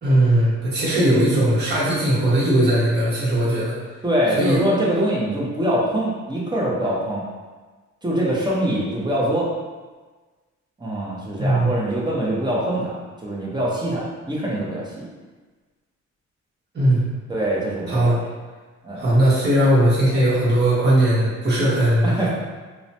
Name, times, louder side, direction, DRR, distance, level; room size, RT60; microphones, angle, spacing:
voice 1, 0.0-3.7 4.4-4.6 11.4-11.7 16.7-17.0 17.9-18.2 19.0-22.3, right 1 dB, 35° right, -9 dB, 1.1 m, -18 dB
voice 2, 4.0-7.2 8.0-9.5 10.8-15.0 17.3-18.1 18.8-19.0 22.0-22.3, right 1 dB, 15° right, -5 dB, 0.7 m, -23 dB
2.9 x 2.1 x 2.7 m, 1.3 s
cardioid pair, 90°, 30 cm